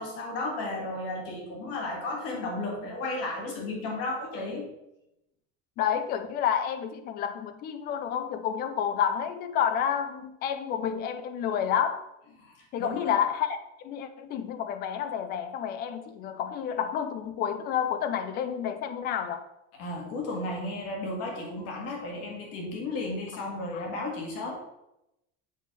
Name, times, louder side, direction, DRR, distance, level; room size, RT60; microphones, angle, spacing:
voice 1, 0.0-4.7 12.4-13.2 19.7-24.6, left 2 dB, 45° left, 0 dB, 1.8 m, -34 dB
voice 2, 5.8-12.1 12.7-19.4 23.7-23.8, left 8 dB, 30° left, 9 dB, 0.4 m, -30 dB
7.5 x 3.4 x 5.1 m, 0.87 s
cardioid pair, 175°, 33 cm